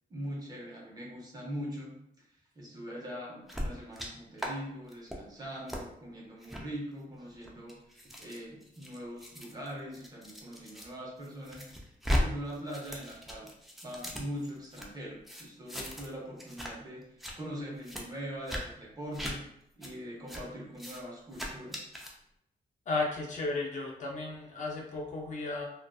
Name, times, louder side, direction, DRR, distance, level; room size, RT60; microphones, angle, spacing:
voice 1, 0.1-2.2 2.6-11.6 12.0-13.5 13.8-19.4 19.8-21.9, equal, 25° right, -3 dB, 0.7 m, -42 dB
sound 1, 3.5-4.1 4.4-4.5 4.9-5.2 5.7-5.8 6.4-6.6 7.3-10.9 11.2-12.2 12.5-14.9 15.3-16.1 16.4-16.7 17.0-17.3 17.8-18.0 18.5-18.6 19.1-19.3 19.8-19.9 20.3-20.4 20.7-21.0 21.3-22.1, equal, ahead, 0.4 m, -37 dB
voice 2, 22.9-25.6, left 3 dB, 50° left, 0 dB, 0.5 m, -34 dB
2.4 x 2.3 x 2.3 m, 0.75 s
cardioid pair, 125°, 16 cm